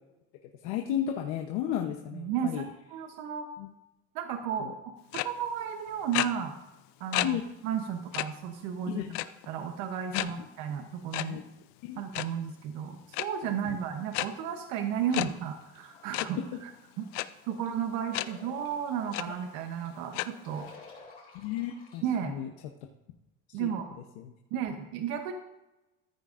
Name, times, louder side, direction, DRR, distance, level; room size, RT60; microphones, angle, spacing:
voice 1, 0.6-2.6 3.6-3.7 4.6-4.7 7.2-7.4 8.9-9.2 10.1-10.4 11.2-11.4 11.8-12.0 13.4-13.8 15.1-15.3 21.3-22.5 23.6-23.7 24.2-24.3, left 10 dB, 80° left, 3 dB, 0.9 m, -34 dB
voice 2, 2.1-3.5 4.1-4.7 5.1-6.6 7.0-7.4 7.6-9.0 9.5-11.4 12.0-16.7 17.0-17.1 17.4-20.7 22.0-22.4 23.5-23.9 24.5-25.3, right 8 dB, 65° right, 6 dB, 0.9 m, -33 dB
sound 1, 5.1-5.3 6.1-6.3 7.1-7.3 7.7-7.8 8.1-8.3 9.1-9.5 10.1-10.3 11.1-11.2 12.0-12.3 13.1-13.3 14.1-14.3 15.1-15.3 16.1-16.3 17.1-17.3 18.1-18.3 18.7-18.8 19.1-19.2 20.1-20.3, left 18 dB, 65° left, 0.5 m, -30 dB
sound 2, 15.0-22.0, left 3 dB, 25° left, 2.0 m, -54 dB
14.0 x 9.1 x 2.5 m, 0.98 s
cardioid pair, 180°, 31 cm